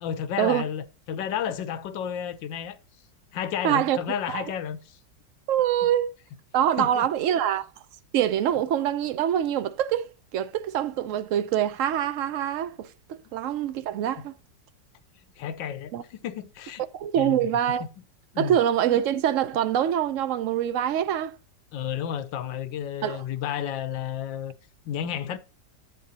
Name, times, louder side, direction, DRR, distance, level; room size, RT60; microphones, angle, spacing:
voice 1, 0.0-2.8 3.3-5.0 6.8-7.1 15.4-16.8 17.2-17.4 17.8-17.9 18.3-18.6 21.7-24.5 24.8-25.4, left 9 dB, 90° left, 1.5 m, -32 dB
voice 2, 3.6-4.0 4.3-4.4 5.5-6.1 6.5-7.7 8.1-14.3 15.9-16.0 16.9-17.8 18.4-21.4 23.0-23.2, right 10 dB, 80° right, 0.7 m, -25 dB
10.5 x 7.7 x 2.8 m
omnidirectional pair, 2.0 m